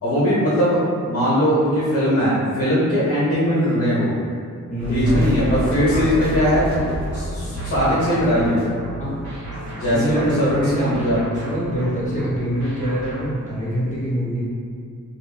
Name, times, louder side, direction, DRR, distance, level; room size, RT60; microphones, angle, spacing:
voice 1, 0.0-4.1 4.9-6.7 7.1-8.6 9.7-11.2, equal, 45° left, -8 dB, 1.4 m, -20 dB
voice 2, 4.7-5.2 5.9-6.1 9.0-9.2 9.8-11.0 11.3-14.4, equal, 25° left, -8 dB, 1.0 m, -25 dB
sound 1, 4.8-13.4, equal, 60° right, 1.4 m, -30 dB
2.7 x 2.5 x 3.9 m, 2.2 s
wide cardioid pair, 165°, 32 cm